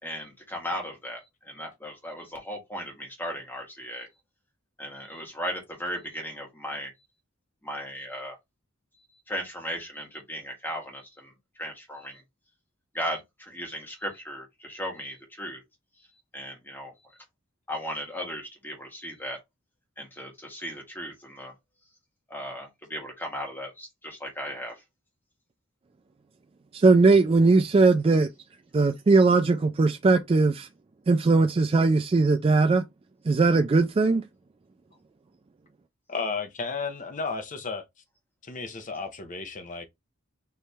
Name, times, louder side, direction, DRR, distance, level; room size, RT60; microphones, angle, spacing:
voice 1, 0.0-4.1 4.8-6.9 7.6-8.4 8.9-12.2 12.9-15.6 16.0-17.2 17.7-19.4 20.0-21.5 22.3-24.8, equal, 10° left, 1.7 m, -37 dB
voice 2, 26.7-28.3 28.7-30.7 31.1-32.8 33.3-34.2, right 3 dB, 25° right, 0.3 m, -20 dB
voice 3, 36.1-37.8 38.4-39.9, left 4 dB, 40° left, 0.9 m, -33 dB
4.6 x 3.1 x 3.4 m
head